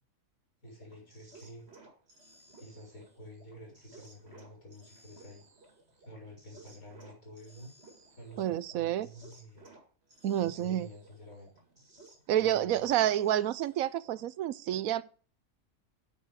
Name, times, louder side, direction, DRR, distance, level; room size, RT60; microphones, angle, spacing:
voice 1, 0.6-1.6 2.6-5.4 6.0-7.7 8.2-9.7 10.4-11.5 12.4-12.9, equal, 85° left, 4.7 m, -49 dB
sound 1, 0.7-14.4, right 2 dB, 50° right, 2.6 m, -58 dB
voice 2, 8.4-9.1 10.2-10.9 12.3-15.1, right 11 dB, 85° right, 1.1 m, -29 dB
9.4 x 6.1 x 6.3 m
omnidirectional pair, 1.4 m